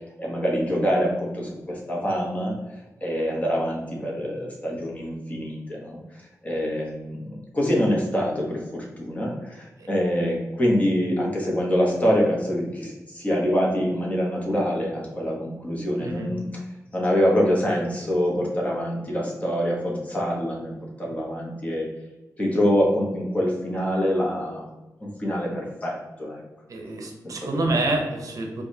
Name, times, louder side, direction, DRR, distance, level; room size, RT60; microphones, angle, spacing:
voice 1, 0.2-2.5 3.0-6.0 6.4-16.5 16.9-20.7 21.0-21.9 22.4-24.7 25.0-26.4 27.4-27.6, equal, 25° left, -3 dB, 1.0 m, -25 dB
voice 2, 26.7-28.6, right 2 dB, 65° right, 2 dB, 0.6 m, -27 dB
4.7 x 2.4 x 2.7 m, 1.1 s
wide cardioid pair, 135°, 6 cm